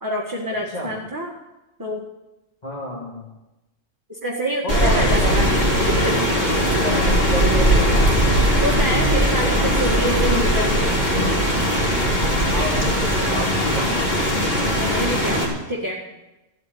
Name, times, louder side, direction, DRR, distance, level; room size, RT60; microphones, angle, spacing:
voice 1, 0.0-1.3 1.8-2.0 4.1-5.5 5.8-6.2 8.6-11.0 14.6-16.0, right 1 dB, 15° right, -2 dB, 1.7 m, -26 dB
voice 2, 2.6-3.3 4.6-5.5 6.8-8.1 12.5-14.3, left 1 dB, 35° left, -5 dB, 2.8 m, -29 dB
Rain, 4.7-15.4, equal, 50° left, 3.8 m, -19 dB
15.5 x 8.8 x 9.3 m, 1.0 s
omnidirectional pair, 1.3 m